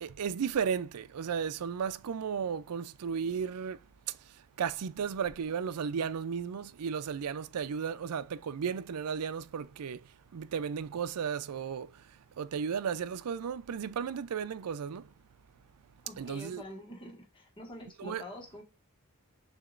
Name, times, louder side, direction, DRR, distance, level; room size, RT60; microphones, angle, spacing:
voice 1, 0.0-3.8 4.6-10.0 10.3-11.9 12.4-15.0 16.2-16.6 18.0-18.2, right 7 dB, 85° right, 0.4 m, -34 dB
voice 2, 16.0-18.6, left 1 dB, 20° left, 1.5 m, -46 dB
6.7 x 2.9 x 2.4 m
head